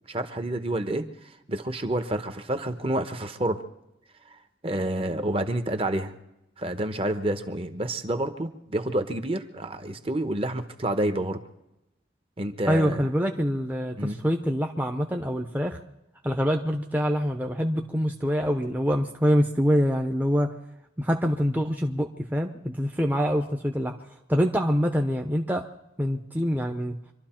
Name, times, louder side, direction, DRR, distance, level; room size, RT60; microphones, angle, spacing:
voice 1, 0.1-1.1 1.5-3.6 4.6-6.1 6.6-11.4 12.4-13.1 14.0-14.2, right 1 dB, 30° right, 8 dB, 1.0 m, -28 dB
voice 2, 12.7-15.8 16.2-20.5 21.0-23.9 24.3-25.6 26.0-26.9, equal, 10° right, 3 dB, 0.8 m, -25 dB
25.5 x 12.5 x 4.4 m, 0.90 s
head